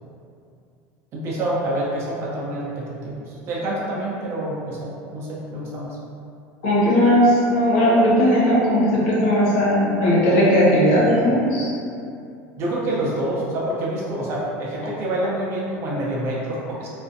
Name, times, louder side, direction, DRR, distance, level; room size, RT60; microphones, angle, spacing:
voice 1, 1.1-6.0 12.6-16.9, right 1 dB, 40° right, -5 dB, 0.6 m, -27 dB
voice 2, 6.6-11.7, equal, 85° left, -7 dB, 0.8 m, -17 dB
2.4 x 2.1 x 2.6 m, 2.5 s
supercardioid pair, 150°, 7 cm